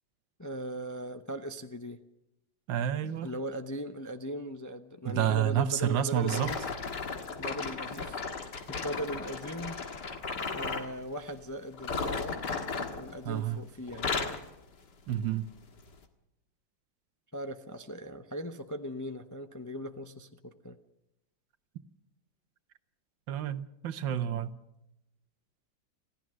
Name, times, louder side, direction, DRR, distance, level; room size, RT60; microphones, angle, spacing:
voice 1, 0.4-2.0 3.2-6.6 7.4-9.8 10.5-12.4 12.9-14.4 17.3-20.8, equal, 20° left, 0.4 m, -39 dB
voice 2, 2.7-3.3 5.0-6.5 13.2-13.6 15.1-15.5 23.3-24.5, right 10 dB, 90° right, 1.7 m, -29 dB
sound 1, 6.2-10.9 11.7-13.5 13.8-14.5 15.1-15.3 15.9-16.0, left 4 dB, 65° left, 2.4 m, -35 dB
26.5 x 15.5 x 6.3 m
omnidirectional pair, 2.0 m